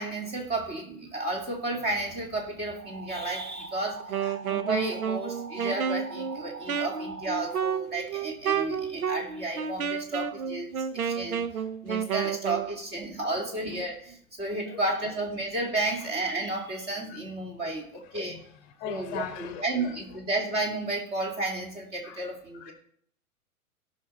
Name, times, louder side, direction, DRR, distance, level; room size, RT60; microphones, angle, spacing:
voice 1, 0.0-4.0 4.4-11.4 11.8-18.4 18.9-22.7, right 2 dB, 20° right, 2 dB, 2.5 m, -32 dB
sound 1, 2.8-7.8, right 3 dB, 90° right, 1.4 m, -42 dB
Wind instrument woodwind instrument, 4.0-12.7, right 7 dB, 75° right, 1.0 m, -31 dB
voice 2, 18.1-19.6 22.0-22.3 22.5-22.7, left 9 dB, 30° left, 7 dB, 1.0 m, -40 dB
17.0 x 5.8 x 4.4 m, 0.64 s
figure-of-eight pair, 120°, 44 cm